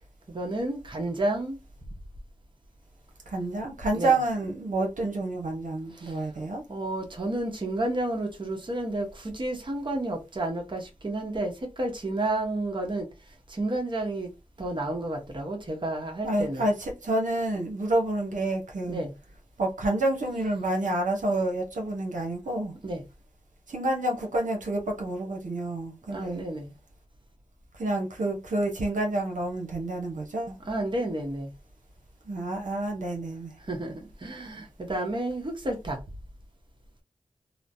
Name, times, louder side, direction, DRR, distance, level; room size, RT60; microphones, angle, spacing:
voice 1, 0.3-1.6 3.9-4.2 5.9-6.2 6.7-13.1 13.5-14.3 14.6-16.6 18.9-19.1 22.8-23.0 26.1-26.7 30.7-31.5 33.7-36.0, right 1 dB, 40° right, 1.0 m, -31 dB
voice 2, 3.3-6.6 16.2-19.0 19.6-22.7 23.7-26.4 27.7-30.5 32.2-33.5, right 2 dB, 80° right, 0.9 m, -28 dB
3.1 x 2.0 x 2.6 m
cardioid pair, 50°, 13 cm